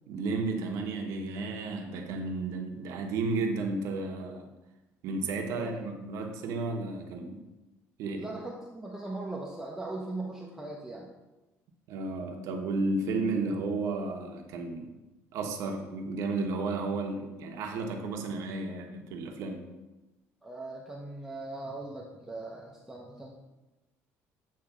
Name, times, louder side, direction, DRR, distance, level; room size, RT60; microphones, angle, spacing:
voice 1, 0.1-4.4 5.0-7.4 8.0-8.3 11.9-14.9 15.3-19.6, right 3 dB, 65° right, 3 dB, 1.1 m, -33 dB
voice 2, 8.2-11.1 20.4-23.4, right 2 dB, 5° right, -2 dB, 0.7 m, -39 dB
8.6 x 3.1 x 6.0 m, 1.1 s
cardioid pair, 150°, 6 cm